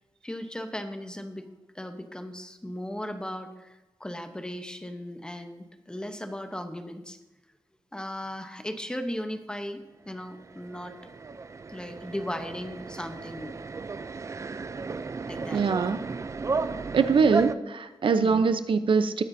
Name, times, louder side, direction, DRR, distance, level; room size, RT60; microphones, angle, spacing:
voice 1, 0.2-1.5 1.7-7.2 7.9-10.9 11.7-13.5 15.3-15.6 18.2-18.4, left 1 dB, 10° left, 7 dB, 0.9 m, -37 dB
sound 1, 10.2-17.5, right 4 dB, 35° right, 0.4 m, -34 dB
voice 2, 15.5-16.0 16.9-19.2, right 5 dB, 75° right, 10 dB, 0.7 m, -23 dB
20.0 x 9.5 x 2.7 m, 1.1 s
wide cardioid pair, 165°, 9 cm